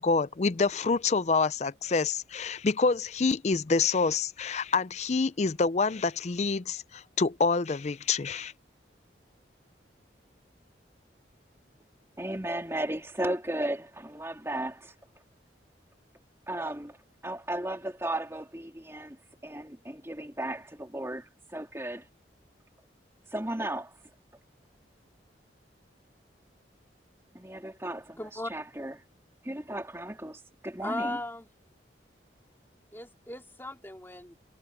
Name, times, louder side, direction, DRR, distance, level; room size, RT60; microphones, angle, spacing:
voice 1, 0.0-8.5, left 4 dB, 40° left, 0.5 m, -27 dB
voice 2, 12.2-14.9 16.5-17.0 17.2-19.2 19.4-22.1 23.3-24.0 27.3-28.9 29.4-31.2, right 1 dB, 15° right, 2.9 m, -35 dB
voice 3, 28.2-28.5 30.8-31.5 32.9-34.3, left 1 dB, 15° left, 2.8 m, -37 dB
head